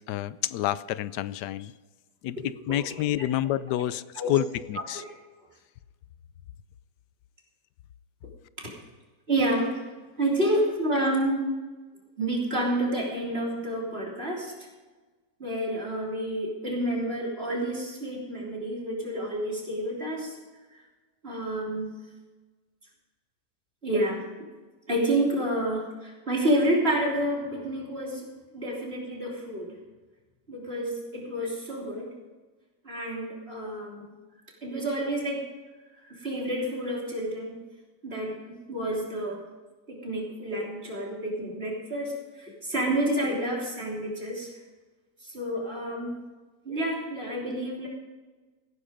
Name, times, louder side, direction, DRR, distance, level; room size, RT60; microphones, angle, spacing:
voice 1, 0.1-1.7 2.2-5.0, left 12 dB, 85° left, 16 dB, 1.2 m, -29 dB
voice 2, 9.3-9.8 10.2-11.4 12.2-14.7 15.4-20.4 20.7-20.8 21.2-21.9 23.8-24.2 24.9-29.8 30.5-32.1 32.8-34.1 34.6-35.5 36.0-37.6 38.0-39.4 39.9-44.5 45.2-46.2 46.6-47.9, right 1 dB, 35° right, -2 dB, 3.6 m, -29 dB
16.5 x 9.9 x 5.2 m, 1.3 s
omnidirectional pair, 1.8 m